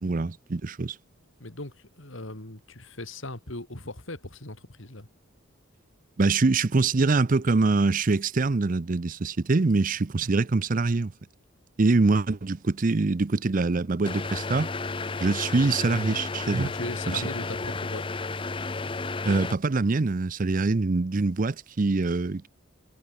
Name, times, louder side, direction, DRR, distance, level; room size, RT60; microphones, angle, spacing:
voice 1, 0.0-1.0 6.2-11.1 11.8-14.7 15.2-16.7 17.1-17.2 19.2-22.5, right 3 dB, 40° right, 0.5 m, -24 dB
voice 2, 1.4-5.1 16.6-18.0, left 2 dB, 65° left, 3.2 m, -39 dB
sound 1, 14.0-19.5, left 3 dB, 25° left, 0.7 m, -32 dB
head